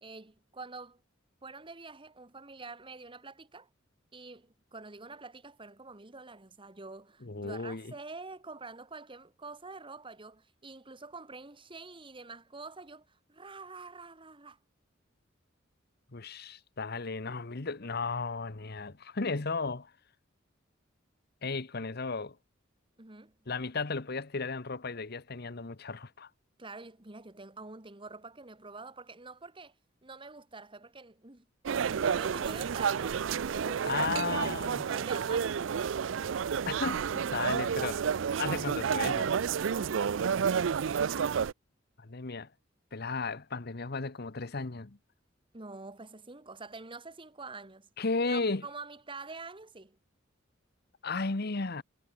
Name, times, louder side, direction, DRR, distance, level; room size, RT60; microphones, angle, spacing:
voice 1, 0.0-1.0 1.4-3.7 4.1-14.6 23.0-23.4 26.6-29.7 30.0-31.5 32.0-33.2 33.4-35.6 45.5-47.9 48.3-50.0, right 3 dB, 25° right, 1.7 m, -46 dB
voice 2, 7.2-7.9 16.1-19.9 21.4-22.4 23.5-26.3 33.8-34.8 36.7-38.1 38.4-39.3 42.0-42.5 42.9-45.0 48.0-48.7 51.0-51.8, left 4 dB, 55° left, 1.1 m, -34 dB
sound 1, 31.6-41.5, right 7 dB, 70° right, 0.4 m, -30 dB
head